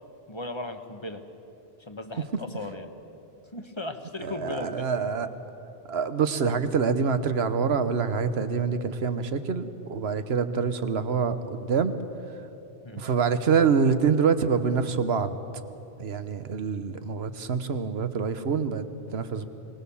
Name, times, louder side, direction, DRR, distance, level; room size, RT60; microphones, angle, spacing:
voice 1, 0.3-1.2 1.8-2.9 3.5-4.9 12.8-13.0, left 2 dB, 25° left, 7 dB, 1.1 m, -36 dB
voice 2, 4.2-5.3 5.9-12.0 13.0-15.4 16.0-19.5, right 6 dB, 75° right, 11 dB, 1.3 m, -26 dB
24.0 x 18.5 x 7.1 m, 2.9 s
omnidirectional pair, 1.1 m